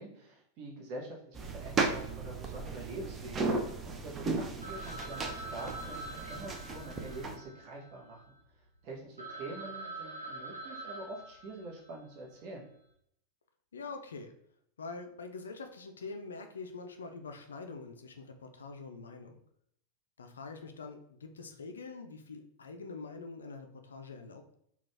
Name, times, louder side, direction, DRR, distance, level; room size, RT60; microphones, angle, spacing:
voice 1, 0.0-8.2 8.8-12.7, right 2 dB, 40° right, -2 dB, 0.9 m, -45 dB
sound 1, 1.4-7.4, right 3 dB, 20° right, 0.5 m, -35 dB
Telephone, 4.6-8.4 8.9-9.0 9.2-12.1, right 2 dB, 80° right, 0.6 m, -45 dB
voice 2, 13.7-14.3 14.8-19.4 20.2-24.5, left 4 dB, 70° left, 6 dB, 0.4 m, -45 dB
3.9 x 2.3 x 3.3 m, 0.70 s
figure-of-eight pair, 90°, 0 cm